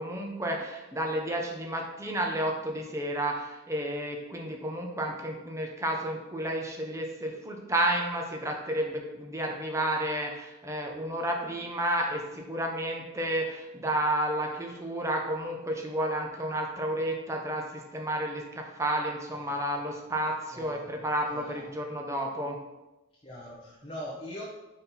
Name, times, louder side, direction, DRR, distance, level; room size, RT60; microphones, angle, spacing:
voice 1, 0.0-22.6, right 1 dB, 15° right, 1 dB, 0.7 m, -31 dB
voice 2, 20.5-21.0 21.4-21.8 23.2-24.4, left 1 dB, 25° left, -5 dB, 0.8 m, -42 dB
5.3 x 4.3 x 4.1 m, 1.0 s
head